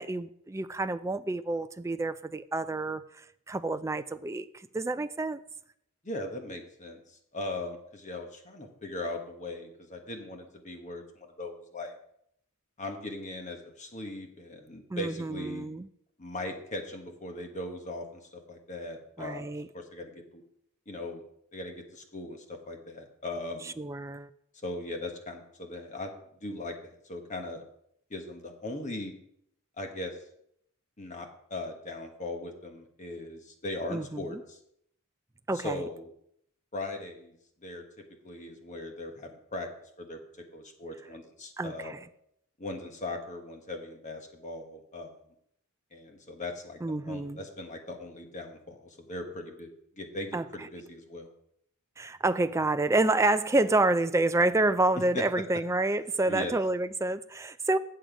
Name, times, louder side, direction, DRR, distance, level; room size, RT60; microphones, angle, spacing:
voice 1, 0.0-4.5 4.7-5.4 14.9-15.9 19.2-19.7 23.8-24.3 33.9-34.4 35.5-35.8 41.6-42.0 46.8-47.4 50.3-50.4 52.0-57.8, right 2 dB, 15° right, 12 dB, 0.3 m, -28 dB
voice 2, 6.0-11.9 12.8-15.7 16.2-19.5 19.7-20.4 20.9-21.2 21.5-23.7 24.6-26.1 26.4-27.6 28.1-29.1 29.8-30.2 31.0-34.6 35.5-36.1 36.7-37.8 38.2-39.7 40.0-40.2 40.5-41.9 42.6-45.1 45.9-46.8 47.0-49.7 50.0-51.3 54.9-55.2 56.3-56.5, left 2 dB, 35° left, 4 dB, 1.3 m, -39 dB
8.7 x 7.8 x 5.1 m, 0.71 s
head